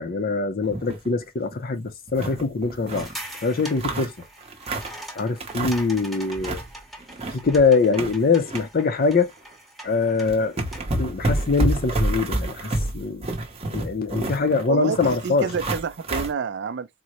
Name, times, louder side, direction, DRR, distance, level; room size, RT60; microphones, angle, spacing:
voice 1, 0.0-3.1 3.4-4.1 5.2-6.6 7.3-9.3 9.8-10.6 11.0-13.3 13.7-15.5, left 4 dB, 50° left, 0.6 m, -23 dB
sound 1, 0.6-1.1 1.5-1.6 1.9-3.2 3.6-5.0 5.4-6.0 6.2-6.7 7.0-8.6 9.0-9.2 9.9-10.0 10.2-16.3, right 1 dB, 30° right, 0.7 m, -28 dB
sound 2, 2.9-11.0, right 1 dB, ahead, 0.9 m, -42 dB
voice 2, 14.7-16.9, right 5 dB, 60° right, 0.5 m, -28 dB
3.8 x 2.1 x 2.8 m
head